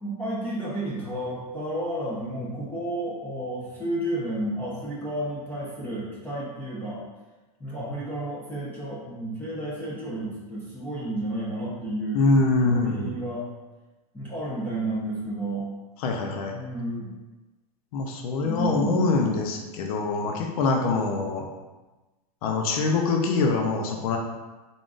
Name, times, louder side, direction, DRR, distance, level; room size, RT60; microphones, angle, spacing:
voice 1, 0.0-7.0 7.6-12.2 12.6-13.5 14.1-15.7 16.5-17.1 18.4-19.2, right 1 dB, 10° left, -8 dB, 0.7 m, -31 dB
voice 2, 12.1-13.1 16.0-16.5 17.9-21.4 22.4-24.2, left 3 dB, 65° left, 2 dB, 0.6 m, -24 dB
3.7 x 3.6 x 2.4 m, 1.2 s
supercardioid pair, 145°, 20 cm